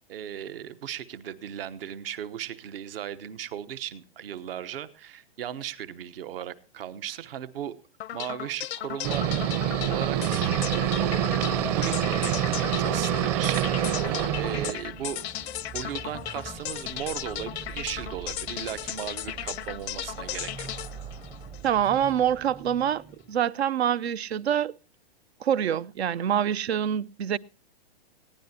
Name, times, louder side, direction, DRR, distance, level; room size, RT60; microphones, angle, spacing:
voice 1, 0.1-7.8 8.1-9.3 9.9-10.5 11.7-14.0 14.3-15.2 15.7-20.8, right 10 dB, 65° right, 1.1 m, -37 dB
sound 1, 8.0-22.1, left 12 dB, 80° left, 0.6 m, -36 dB
sound 2, 9.0-14.7, right 11 dB, 40° right, 1.1 m, -26 dB
sound 3, 10.4-23.5, right 4 dB, 15° right, 0.6 m, -44 dB
voice 2, 21.6-24.7 25.4-27.4, right 9 dB, 80° right, 0.6 m, -26 dB
20.5 x 15.5 x 2.8 m
hypercardioid pair, 145°, 31 cm